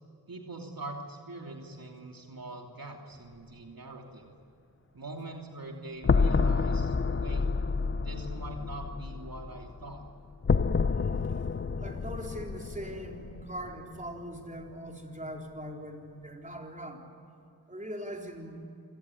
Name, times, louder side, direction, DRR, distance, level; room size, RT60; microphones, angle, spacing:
voice 1, 0.3-4.3 4.9-7.5 8.0-10.0, right 2 dB, 60° right, 1 dB, 3.0 m, -43 dB
sound 1, 6.0-14.1, left 4 dB, 35° left, 0.6 m, -29 dB
voice 2, 11.2-17.0 17.7-18.6, equal, 20° right, 1 dB, 4.1 m, -41 dB
26.5 x 18.5 x 9.9 m, 2.6 s
wide cardioid pair, 65°, 38 cm